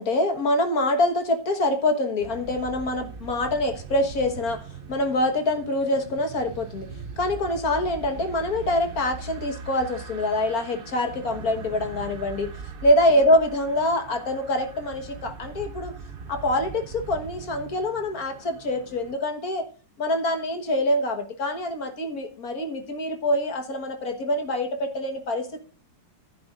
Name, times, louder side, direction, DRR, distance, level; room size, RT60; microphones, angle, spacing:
voice 1, 0.0-4.6 4.9-12.5 12.8-15.9 16.3-19.7 20.0-25.6, left 1 dB, 55° left, 6 dB, 1.8 m, -25 dB
sound 1, 2.2-19.1, right 5 dB, 55° right, 0.6 m, -41 dB
15.0 x 8.6 x 2.5 m, 0.39 s
omnidirectional pair, 1.9 m